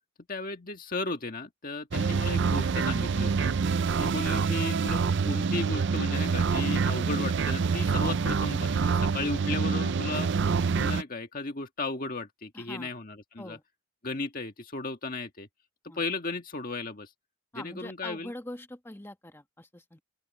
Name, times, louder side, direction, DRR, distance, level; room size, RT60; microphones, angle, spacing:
voice 1, 0.3-3.5 4.0-10.3 10.8-13.6 14.0-15.5 15.9-17.1 17.5-18.3, left 3 dB, 40° left, 1.7 m, -35 dB
sound 1, 1.9-11.0, right 5 dB, 55° right, 0.5 m, -26 dB
voice 2, 12.5-12.9 13.4-13.6 15.9-16.0 17.5-20.0, left 1 dB, 10° left, 1.3 m, -43 dB
open air
head